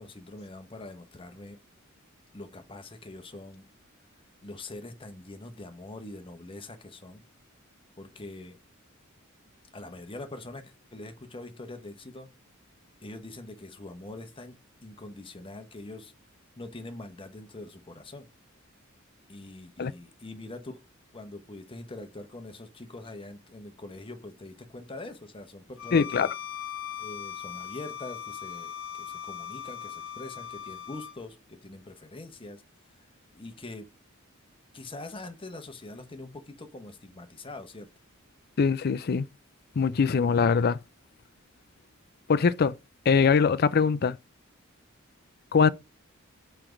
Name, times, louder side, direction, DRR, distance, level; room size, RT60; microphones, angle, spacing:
voice 1, 0.0-1.6 2.3-3.6 4.4-7.2 8.0-8.6 9.7-12.3 13.0-16.1 16.6-18.3 19.3-20.8 21.1-26.3 27.0-32.6 32.9-33.1 33.3-33.9 34.7-37.9, left 2 dB, 25° left, 1.0 m, -43 dB
Bowed string instrument, 25.8-31.2, left 9 dB, 75° left, 0.9 m, -39 dB
voice 2, 25.9-26.3 38.6-39.3 39.8-40.8 42.3-42.7 43.1-44.2 45.5-45.7, left 5 dB, 50° left, 0.4 m, -22 dB
5.9 x 4.5 x 5.1 m
head